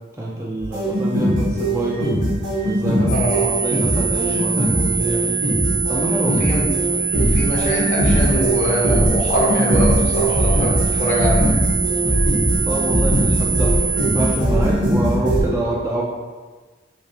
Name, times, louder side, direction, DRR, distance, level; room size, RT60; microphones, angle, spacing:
voice 1, 0.2-2.2 2.6-5.4 5.9-6.4 12.6-13.8 14.1-16.0, right 2 dB, 15° right, -4 dB, 0.3 m, -26 dB
sound 1, 0.6-15.4, equal, 75° right, 1.1 m, -20 dB
sound 2, 3.1-14.3, right 5 dB, 75° left, 1.0 m, -24 dB
voice 2, 3.1-3.5 6.2-6.7 7.3-10.7 11.0-11.4, equal, 40° left, -5 dB, 0.7 m, -23 dB
3.4 x 3.3 x 2.8 m, 1.3 s
head